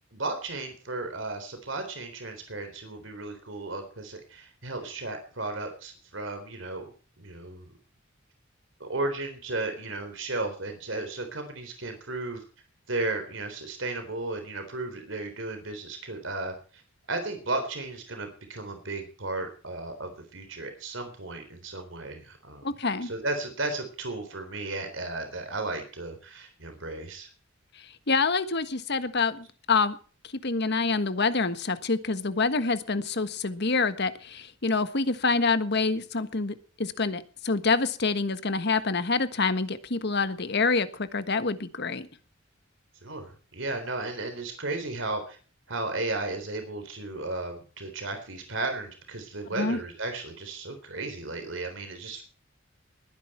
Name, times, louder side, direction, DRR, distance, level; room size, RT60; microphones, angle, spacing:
voice 1, 0.1-6.9 7.2-7.7 8.8-12.4 12.9-16.8 17.1-22.7 23.0-27.3 43.0-45.4 45.7-52.2, right 2 dB, 70° right, 6 dB, 3.8 m, -34 dB
voice 2, 22.6-23.1 28.1-30.0 30.4-42.1 49.6-49.8, left 4 dB, 55° left, 12 dB, 1.4 m, -26 dB
20.5 x 10.5 x 4.5 m, 0.39 s
head